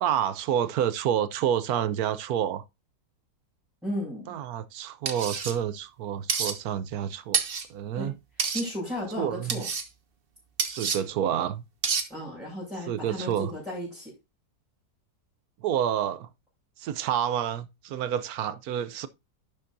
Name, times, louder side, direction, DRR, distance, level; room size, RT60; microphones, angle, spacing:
voice 1, 0.0-2.6 4.3-7.4 7.7-8.1 9.2-9.6 10.8-11.6 12.9-13.5 15.6-16.3 16.8-19.1, right 10 dB, 65° right, 1.1 m, -28 dB
voice 2, 3.8-4.3 7.9-8.1 8.5-9.7 12.1-14.1, equal, ahead, 5.8 m, -34 dB
sound 1, 5.1-5.5 6.3-6.5 7.3-7.7 8.4-8.6 9.5-9.8 10.6-11.0 11.8-12.1, right 6 dB, 40° right, 0.9 m, -28 dB
11.0 x 7.3 x 2.6 m
omnidirectional pair, 1.8 m